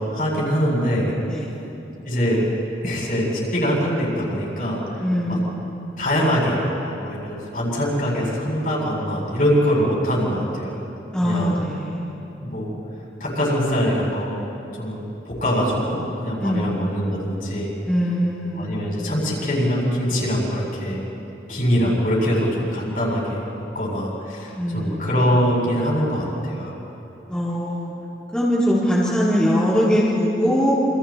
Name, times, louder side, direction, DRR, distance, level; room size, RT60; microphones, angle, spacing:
voice 1, 0.1-1.2 2.0-2.4 2.8-5.4 6.0-10.7 11.2-11.6 12.4-12.8 13.2-14.3 14.8-17.8 18.5-21.1 21.5-23.5 23.7-26.8, equal, 50° left, -4 dB, 7.7 m, -23 dB
voice 2, 5.0-5.9 11.1-12.4 16.4-16.8 17.8-18.9 24.6-25.2 27.3-27.9 28.3-30.7, equal, 5° left, -9 dB, 3.8 m, -22 dB
29.0 x 28.0 x 4.5 m, 2.9 s
head